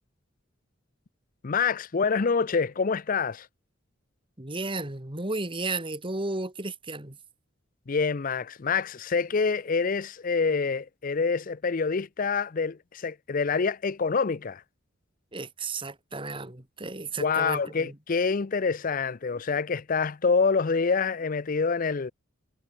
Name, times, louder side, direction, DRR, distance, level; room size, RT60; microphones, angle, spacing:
voice 1, 1.4-3.5 7.9-14.6 17.2-22.1, left 5 dB, 45° left, 0.5 m, -26 dB
voice 2, 4.4-7.2 15.3-18.0, right 3 dB, 25° right, 2.2 m, -33 dB
head